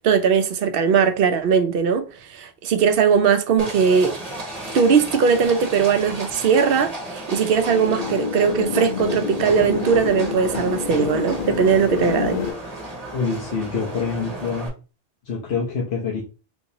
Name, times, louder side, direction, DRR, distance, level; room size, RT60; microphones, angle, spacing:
voice 1, 0.0-2.0 2.3-4.1 4.7-12.4, right 6 dB, 65° right, 0.7 m, -19 dB
Livestock farm animals working animals, 3.6-14.7, right 1 dB, 40° right, 1.2 m, -34 dB
sound 1, 7.5-12.5, left 6 dB, 60° left, 0.8 m, -28 dB
voice 2, 13.1-14.7 15.3-16.2, left 5 dB, 80° left, 1.1 m, -26 dB
3.6 x 2.9 x 2.6 m
omnidirectional pair, 1.1 m